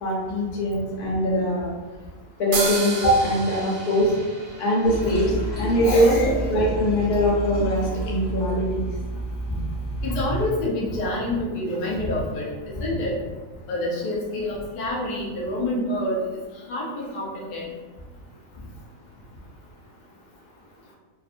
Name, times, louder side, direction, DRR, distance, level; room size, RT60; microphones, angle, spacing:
voice 1, 0.0-1.7 2.4-4.1 4.6-8.9, equal, 85° left, -3 dB, 1.3 m, -22 dB
sound 1, 2.5-6.1, right 3 dB, 70° right, 0.9 m, -32 dB
Toilet flush, 4.8-10.5, right 2 dB, 5° left, 0.9 m, -30 dB
voice 2, 5.8-6.3 10.0-13.1 13.7-16.2 16.7-17.7, left 1 dB, 55° left, -4 dB, 0.5 m, -27 dB
2.5 x 2.4 x 2.5 m, 1.3 s
omnidirectional pair, 1.6 m